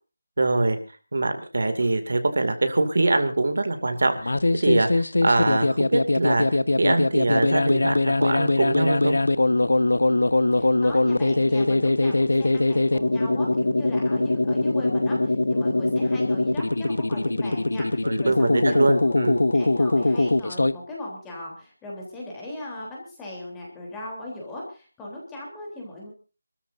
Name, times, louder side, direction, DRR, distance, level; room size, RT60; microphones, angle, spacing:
voice 1, 0.4-0.8 1.1-4.3 4.6-6.5 6.8-9.2 18.0-19.4, right 2 dB, 55° right, 8 dB, 2.4 m, -23 dB
sound 1, 4.2-20.7, left 2 dB, 80° left, 1.1 m, -22 dB
voice 2, 10.6-19.1 19.5-26.1, left 1 dB, 5° left, -3 dB, 3.4 m, -38 dB
27.5 x 13.5 x 2.6 m, 0.34 s
figure-of-eight pair, 175°, 0 cm